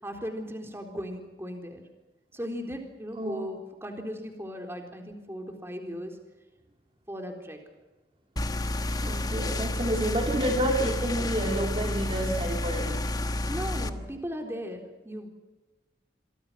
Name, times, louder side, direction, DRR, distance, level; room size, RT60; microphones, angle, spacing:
voice 1, 0.0-1.8 2.3-6.2 7.1-7.6 13.5-15.3, equal, 15° right, 4 dB, 4.0 m, -37 dB
sound 1, 8.4-13.9, left 2 dB, 20° left, 1.2 m, -30 dB
voice 2, 9.0-13.0, right 1 dB, 30° right, 1 dB, 2.8 m, -29 dB
27.5 x 24.0 x 5.8 m, 1.2 s
head